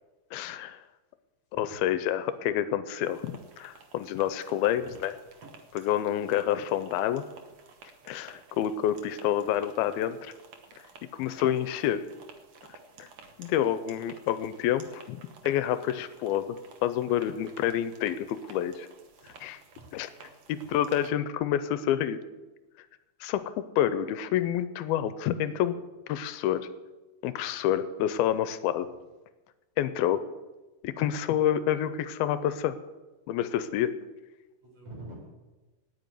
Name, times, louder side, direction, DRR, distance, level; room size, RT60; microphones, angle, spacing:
voice 1, 0.3-0.8 1.5-5.1 5.7-7.3 8.1-10.3 11.1-12.1 12.7-13.1 13.4-18.9 19.2-19.6 19.9-20.1 20.5-22.2 23.2-25.8 26.1-26.7 27.2-28.9 29.8-30.3 30.8-32.8 33.3-33.9, left 11 dB, 85° left, 12 dB, 2.4 m, -28 dB
voice 2, 1.5-1.9 4.7-4.9 19.2-20.4 34.6-35.3, right 1 dB, 40° right, -2 dB, 5.6 m, -48 dB
sound 1, 3.0-21.1, right 4 dB, 85° right, 1.2 m, -53 dB
9.5 x 9.3 x 9.1 m, 1.1 s
omnidirectional pair, 4.4 m